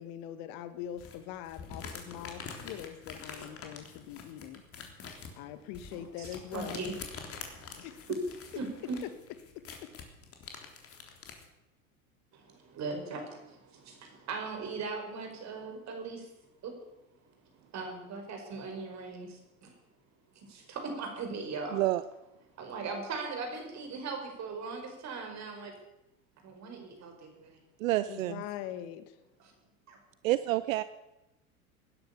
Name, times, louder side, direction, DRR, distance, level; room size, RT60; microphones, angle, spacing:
voice 1, 0.0-4.6 5.4-7.0 7.7-8.0 9.0-9.1 9.5-9.9 28.1-29.2, left 11 dB, 50° left, 12 dB, 1.5 m, -42 dB
sound 1, 1.0-11.5, left 5 dB, 30° left, 3.5 m, -46 dB
voice 2, 5.9-6.9 7.3-7.9 8.6-9.0 12.3-16.3 16.6-16.7 17.7-19.7 20.3-21.8 22.6-25.7 26.4-27.6 29.4-29.5 29.9-30.0, right 4 dB, 40° right, 4 dB, 5.4 m, -39 dB
voice 3, 21.7-22.0 27.8-28.4 30.2-30.8, right 16 dB, 65° right, 14 dB, 0.8 m, -28 dB
19.0 x 10.5 x 7.0 m, 0.96 s
hypercardioid pair, 90°, 43 cm